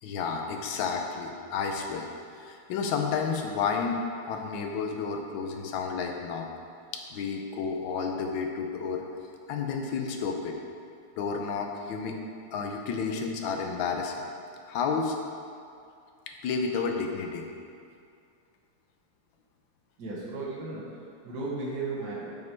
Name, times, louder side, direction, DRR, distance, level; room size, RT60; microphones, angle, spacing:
voice 1, 0.0-6.5 6.9-9.0 9.5-10.6 11.2-12.2 12.5-14.2 14.7-15.1 16.4-17.5, left 5 dB, 80° left, 3 dB, 1.5 m, -31 dB
voice 2, 20.0-22.4, right 3 dB, 60° right, -7 dB, 2.1 m, -35 dB
7.4 x 5.2 x 4.6 m, 2.4 s
omnidirectional pair, 2.1 m